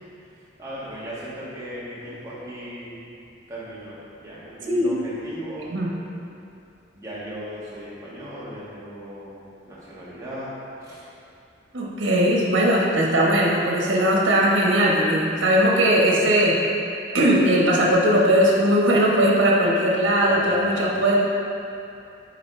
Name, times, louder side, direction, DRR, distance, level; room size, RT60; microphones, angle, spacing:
voice 1, 0.6-3.1 3.5-5.8 6.9-11.1 20.2-20.8, right 1 dB, 15° right, -10 dB, 1.5 m, -37 dB
voice 2, 4.7-5.0 5.7-5.9 11.7-16.6 17.1-21.2, equal, 90° right, -4 dB, 1.2 m, -19 dB
9.4 x 4.0 x 3.3 m, 2.7 s
head